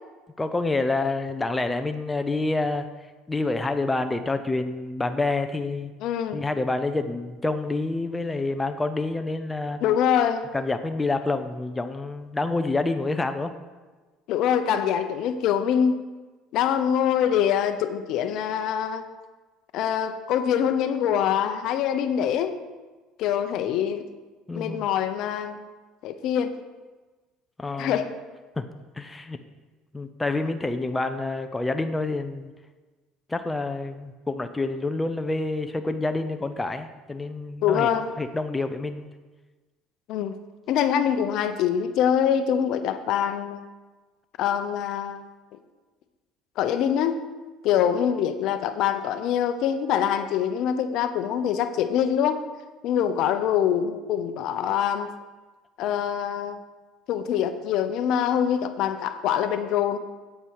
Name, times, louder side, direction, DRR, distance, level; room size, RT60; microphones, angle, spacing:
voice 1, 0.4-2.9 3.3-5.9 6.3-9.8 10.5-13.5 24.5-24.9 27.6-28.0 28.6-28.7 29.0-29.4 29.9-32.5 33.3-37.9 38.2-39.1, left 2 dB, 10° left, 8 dB, 0.6 m, -27 dB
voice 2, 6.0-6.4 9.8-10.5 14.3-16.0 16.5-19.0 19.7-22.6 23.2-24.0 24.5-25.6 26.0-26.5 27.8-28.1 37.6-38.1 40.1-40.3 40.7-43.6 44.4-45.3 46.6-47.2 47.6-52.4 52.8-55.1 55.8-56.6 57.1-60.0, left 9 dB, 65° left, 10 dB, 0.7 m, -24 dB
8.8 x 8.5 x 4.7 m, 1.3 s
supercardioid pair, 110°, 0 cm